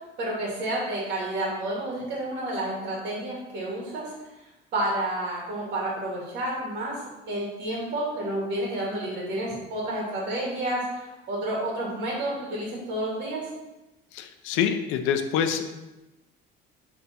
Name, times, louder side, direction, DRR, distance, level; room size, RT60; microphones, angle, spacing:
voice 1, 0.2-4.1 4.7-6.9 7.3-13.5, right 1 dB, 55° right, -4 dB, 2.0 m, -30 dB
voice 2, 14.1-15.6, left 8 dB, 90° left, 7 dB, 0.6 m, -26 dB
6.8 x 3.6 x 4.2 m, 1.0 s
cardioid pair, 140°, 20 cm